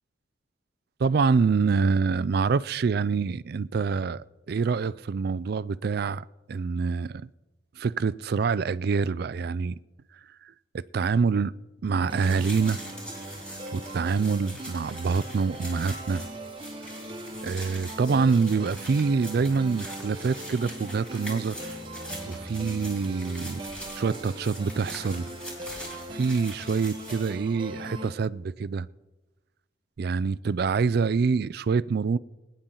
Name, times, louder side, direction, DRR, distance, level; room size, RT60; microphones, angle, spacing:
voice 1, 1.0-7.3 7.8-9.8 10.7-11.5 11.8-12.8 13.7-16.2 17.4-21.8 22.3-23.6 23.9-25.2 26.1-28.9 30.0-32.2, right 5 dB, 55° right, 0.4 m, -26 dB
sound 1, 12.1-28.1, right 1 dB, 25° right, 1.2 m, -40 dB
sound 2, 12.2-27.3, equal, 5° left, 4.2 m, -43 dB
21.5 x 10.5 x 3.8 m
head